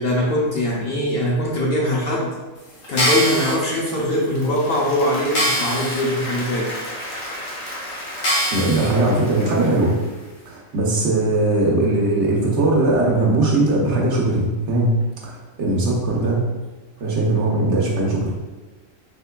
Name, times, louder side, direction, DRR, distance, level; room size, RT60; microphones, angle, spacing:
voice 1, 0.0-2.3 2.9-6.7, left 1 dB, 60° left, -3 dB, 0.7 m, -21 dB
sound 1, 2.8-3.5 4.2-4.3 4.8-4.9 5.3-6.0 6.5-6.6 7.3-7.4 8.2-8.9 9.4-9.5, equal, 75° left, 1.5 m, -22 dB
Applause, 4.3-10.4, equal, 25° left, 0.8 m, -34 dB
voice 2, 8.5-9.9 10.5-14.9 15.3-16.4 17.0-18.3, right 2 dB, 65° right, -3 dB, 1.0 m, -19 dB
3.6 x 3.3 x 2.2 m, 1.2 s
omnidirectional pair, 1.3 m